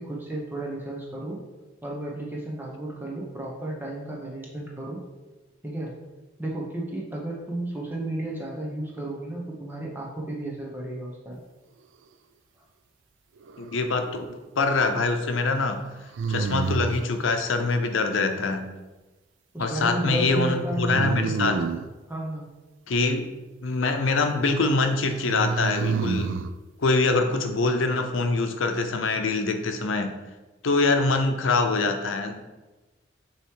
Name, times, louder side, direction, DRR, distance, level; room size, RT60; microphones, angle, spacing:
voice 1, 0.0-1.4 1.8-5.0 5.6-5.9 6.4-11.4 19.5-21.4 22.1-22.5, right 1 dB, 10° right, -2 dB, 0.8 m, -32 dB
sound 1, 13.4-14.1 16.1-17.1 20.9-21.9 25.3-26.5, right 5 dB, 75° right, 0.3 m, -28 dB
voice 2, 13.6-15.8 16.3-18.7 19.6-21.6 22.9-23.3 23.6-26.4 26.8-30.2 30.6-32.5, left 3 dB, 85° left, 6 dB, 0.7 m, -24 dB
6.8 x 3.1 x 4.7 m, 1.2 s
head